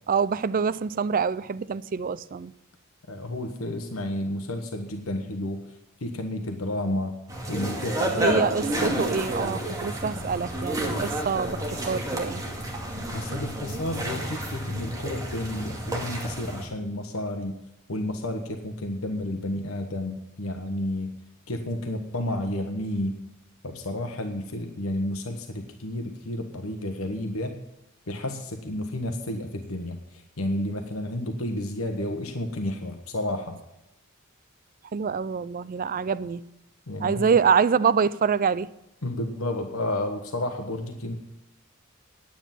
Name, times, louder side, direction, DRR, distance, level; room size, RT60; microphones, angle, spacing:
voice 1, 0.1-2.5 8.1-12.4 34.9-36.4 37.0-38.7, right 6 dB, 40° right, 0.4 m, -25 dB
voice 2, 3.1-5.7 6.0-7.2 7.5-8.4 13.1-17.5 17.9-21.2 21.5-23.1 23.6-27.6 28.1-33.6 36.9-37.3 39.0-41.2, left 1 dB, 85° left, 1.2 m, -31 dB
sound 1, 7.3-16.7, equal, 15° right, 2.2 m, -30 dB
10.0 x 8.6 x 7.4 m
head